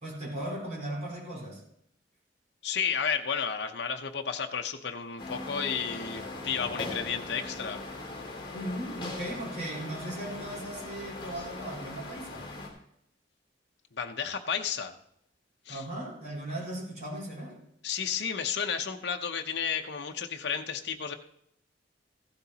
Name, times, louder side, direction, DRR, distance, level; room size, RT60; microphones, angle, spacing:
voice 1, 0.0-1.6 8.5-12.5 15.7-17.6, right 1 dB, 40° right, -4 dB, 4.3 m, -37 dB
voice 2, 2.6-7.8 14.0-14.9 15.7-15.8 17.8-21.1, left 7 dB, 65° left, 4 dB, 0.7 m, -32 dB
sound 1, 5.2-12.7, left 2 dB, 25° left, 3.2 m, -40 dB
15.0 x 12.0 x 2.9 m, 0.74 s
head